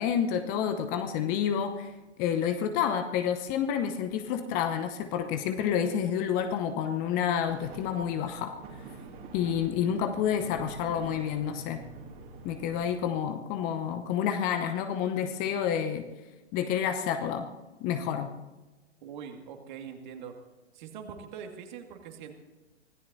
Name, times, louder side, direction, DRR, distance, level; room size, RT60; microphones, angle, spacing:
voice 1, 0.0-1.9 2.2-8.5 9.3-11.8 12.4-16.1 16.5-17.5 17.8-18.3, left 8 dB, 25° left, 8 dB, 0.9 m, -29 dB
sound 1, 7.5-13.1, right 4 dB, 25° right, 2.7 m, -46 dB
voice 2, 19.0-20.3 20.7-22.3, right 7 dB, 45° right, 4 dB, 2.3 m, -43 dB
25.0 x 17.0 x 2.8 m, 1.1 s
figure-of-eight pair, 110°, 33 cm